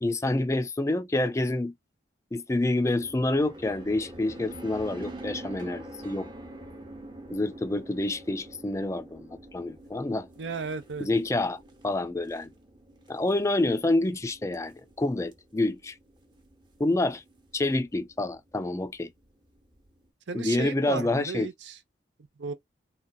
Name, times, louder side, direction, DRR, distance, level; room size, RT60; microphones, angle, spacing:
voice 1, 0.0-1.7 2.3-6.3 7.3-10.3 11.0-12.5 13.1-16.0 16.8-17.2 17.5-19.1 20.3-21.5, left 2 dB, 15° left, 0.3 m, -28 dB
sound 1, 3.0-20.1, right 1 dB, 25° right, 0.7 m, -47 dB
voice 2, 10.4-11.1 20.3-21.8 22.4-22.5, right 4 dB, 80° right, 0.7 m, -34 dB
3.8 x 2.3 x 2.3 m
head